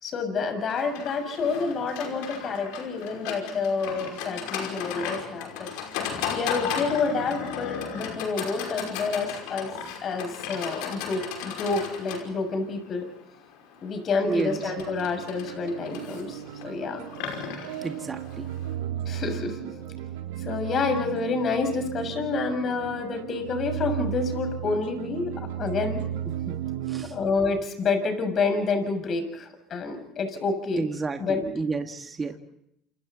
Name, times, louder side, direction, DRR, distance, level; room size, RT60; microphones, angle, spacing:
voice 1, 0.0-5.7 6.3-9.7 10.0-13.1 13.8-17.1 19.1-19.6 20.4-26.0 27.0-30.9 31.2-31.5, left 4 dB, 45° left, 7 dB, 6.9 m, -28 dB
Livestock farm animals working animals, 0.7-18.7, left 7 dB, 80° left, 5.5 m, -36 dB
voice 2, 14.2-14.6 17.8-18.5 26.4-26.6 26.9-27.1 30.8-32.4, right 4 dB, 25° right, 5 dB, 2.1 m, -31 dB
sound 1, 14.5-27.0, right 11 dB, 90° right, 3.5 m, -35 dB
28.5 x 28.5 x 4.2 m, 0.76 s
supercardioid pair, 85°, 0 cm